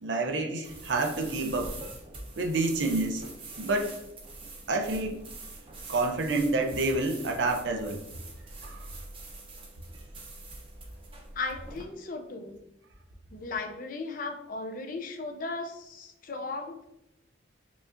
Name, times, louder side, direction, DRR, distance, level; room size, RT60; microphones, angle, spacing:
voice 1, 0.0-1.7 2.4-3.2 3.6-3.9 4.7-5.2 5.9-8.0 8.6-8.9, right 2 dB, 70° right, 3 dB, 0.6 m, -28 dB
sound 1, 0.6-11.8, right 2 dB, 30° right, 0.6 m, -44 dB
voice 2, 11.3-12.6 13.3-16.8, left 3 dB, 45° left, 5 dB, 0.5 m, -36 dB
4.9 x 2.4 x 2.5 m, 0.82 s
head